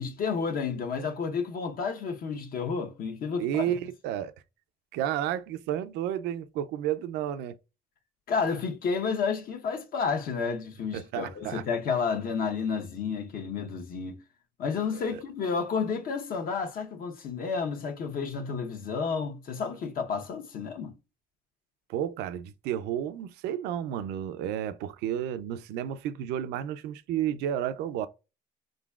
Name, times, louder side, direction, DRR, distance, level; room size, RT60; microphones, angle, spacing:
voice 1, 0.0-3.6 8.3-14.2 14.6-20.9, left 5 dB, 60° left, 0.9 m, -31 dB
voice 2, 3.4-4.3 4.9-7.6 10.9-11.6 14.9-15.2 21.9-28.1, right 10 dB, 90° right, 0.5 m, -31 dB
4.5 x 3.9 x 2.3 m
cardioid pair, 110°, 17 cm